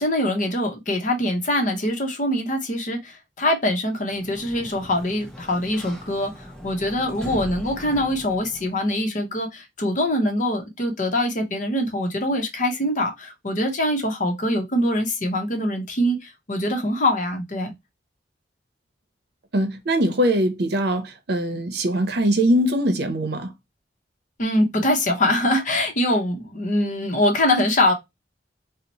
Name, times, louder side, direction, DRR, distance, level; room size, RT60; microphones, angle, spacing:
voice 1, 0.0-17.7 24.4-27.9, left 1 dB, 45° left, 0.8 m, -23 dB
Sliding door, 4.0-8.9, equal, 5° left, 0.7 m, -40 dB
voice 2, 19.5-23.5, right 1 dB, 65° right, 0.7 m, -22 dB
2.8 x 2.1 x 4.0 m
head